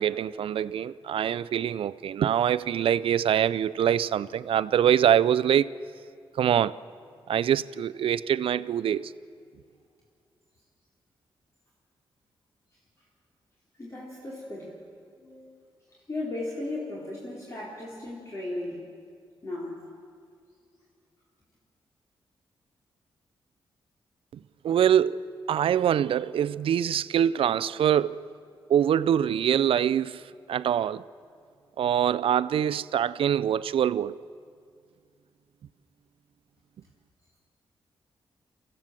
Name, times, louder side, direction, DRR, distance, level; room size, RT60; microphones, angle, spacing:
voice 1, 0.0-5.7 6.4-6.7 7.3-9.1 24.6-28.3 28.7-30.2 30.5-31.1 31.8-34.2, right 9 dB, 75° right, 0.5 m, -24 dB
voice 2, 13.8-14.8 15.2-15.6 15.9-18.8 19.4-19.8, left 2 dB, 35° left, 4.0 m, -36 dB
23.5 x 16.0 x 7.5 m
cardioid pair, 80°, 9 cm